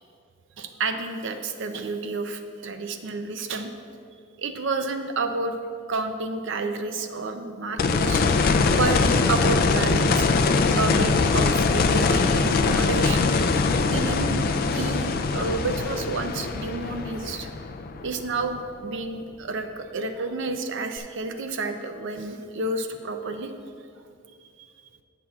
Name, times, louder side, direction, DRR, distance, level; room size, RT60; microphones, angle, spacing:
voice 1, 0.6-3.7 4.4-5.6 5.9-8.2 8.7-9.0 9.3-10.3 10.8-13.3 13.9-17.5 18.0-23.5, right 3 dB, 60° right, 7 dB, 0.6 m, -30 dB
sound 1, 7.8-18.7 21.0-21.1, left 4 dB, 45° left, 0.4 m, -22 dB
16.0 x 5.9 x 2.4 m, 2.3 s
head